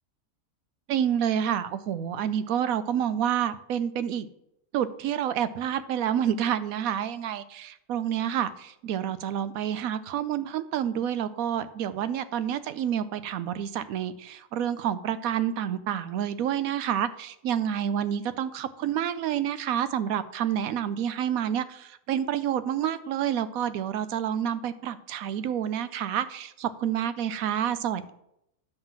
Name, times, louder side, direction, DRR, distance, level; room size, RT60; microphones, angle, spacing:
voice 1, 0.9-4.3 4.7-28.1, right 9 dB, 80° right, 13 dB, 1.0 m, -28 dB
10.5 x 3.8 x 7.2 m, 0.81 s
omnidirectional pair, 1.5 m